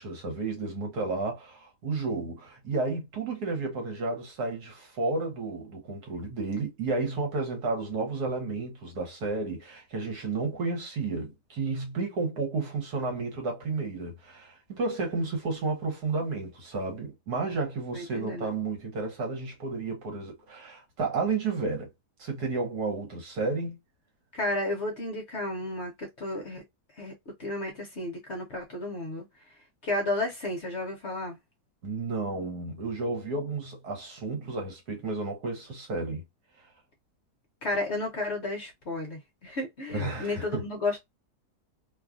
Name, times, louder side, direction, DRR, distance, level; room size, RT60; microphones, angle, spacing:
voice 1, 0.0-21.9 22.2-23.8 31.8-36.2 39.9-40.7, right 3 dB, 70° right, 1.6 m, -32 dB
voice 2, 17.9-18.5 24.3-26.6 26.9-27.1 27.4-29.2 29.8-31.4 37.6-41.0, left 2 dB, 50° left, 0.9 m, -32 dB
3.1 x 2.3 x 2.4 m
omnidirectional pair, 1.8 m